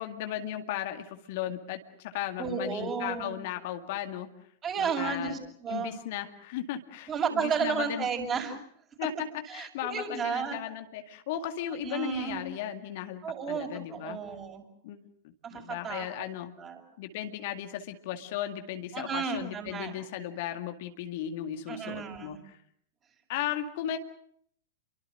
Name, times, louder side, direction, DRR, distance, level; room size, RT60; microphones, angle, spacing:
voice 1, 0.0-4.3 4.8-5.4 5.7-8.1 9.0-9.1 9.5-13.2 13.5-14.2 14.8-15.0 15.5-16.5 17.0-22.6 23.3-24.0, left 11 dB, 50° left, 6 dB, 2.1 m, -36 dB
voice 2, 2.4-3.3 4.6-5.9 7.1-8.6 9.5-10.6 11.7-12.4 13.2-14.6 15.5-16.3 16.6-16.8 18.9-19.9 21.7-22.4, right 6 dB, 25° right, 3 dB, 6.8 m, -33 dB
30.0 x 23.5 x 6.6 m, 0.66 s
figure-of-eight pair, 95°, 0 cm